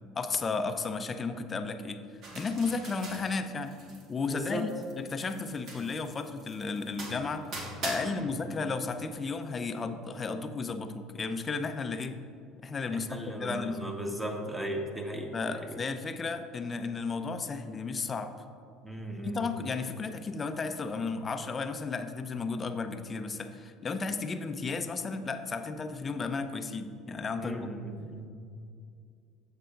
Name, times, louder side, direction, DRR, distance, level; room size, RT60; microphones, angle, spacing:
voice 1, 0.1-2.0 2.3-3.8 4.1-7.5 7.8-12.2 12.6-13.9 15.3-18.3 19.2-27.7, left 4 dB, 30° left, 8 dB, 0.6 m, -34 dB
sound 1, 2.2-4.1 4.4-8.0, right 2 dB, 50° right, 1.5 m, -42 dB
voice 2, 4.3-4.7 8.0-8.3 12.9-15.8 18.8-19.6 27.4-28.3, right 1 dB, 10° right, 2 dB, 1.3 m, -37 dB
15.0 x 5.6 x 2.5 m, 2.4 s
figure-of-eight pair, 65°, 0 cm